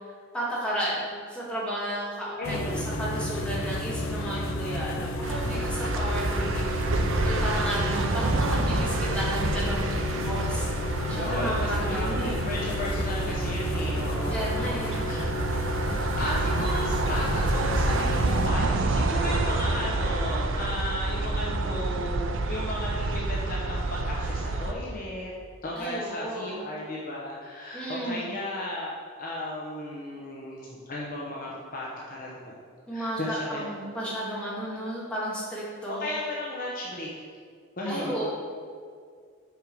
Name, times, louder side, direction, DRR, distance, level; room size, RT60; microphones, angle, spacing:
voice 1, 0.3-12.5 14.3-15.1 25.8-26.6 27.7-28.3 32.9-36.1 37.9-38.3, right 1 dB, 5° left, -7 dB, 2.0 m, -33 dB
sound 1, 2.4-18.5, left 2 dB, 75° left, 0.8 m, -32 dB
voice 2, 2.4-2.9 11.1-14.6 15.1-15.2 16.1-25.3 25.6-28.9 29.2-32.5 32.9-34.0 36.0-37.1 37.8-38.3, left 1 dB, 40° left, -4 dB, 0.9 m, -34 dB
sound 2, 5.2-24.7, right 2 dB, 65° right, 0.5 m, -28 dB
6.9 x 5.6 x 4.7 m, 2.1 s
head